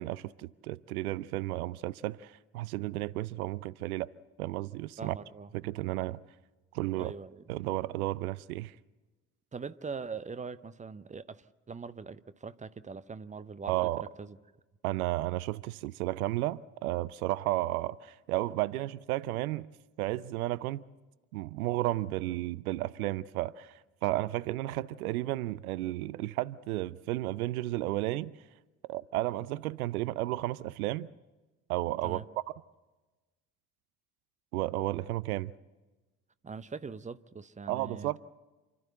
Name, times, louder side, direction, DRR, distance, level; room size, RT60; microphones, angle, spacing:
voice 1, 0.0-4.1 4.4-5.2 5.5-6.2 6.7-7.1 7.5-8.7 13.7-14.0 14.8-19.7 20.0-20.8 21.3-28.3 28.9-31.1 31.7-32.2 34.5-35.5 37.7-38.2, right 17 dB, 70° right, 0.6 m, -33 dB
voice 2, 5.0-5.5 7.0-7.4 9.5-14.4 32.0-32.2 36.4-38.1, right 5 dB, 15° right, 0.8 m, -42 dB
28.5 x 12.5 x 7.8 m
figure-of-eight pair, 55°, 45 cm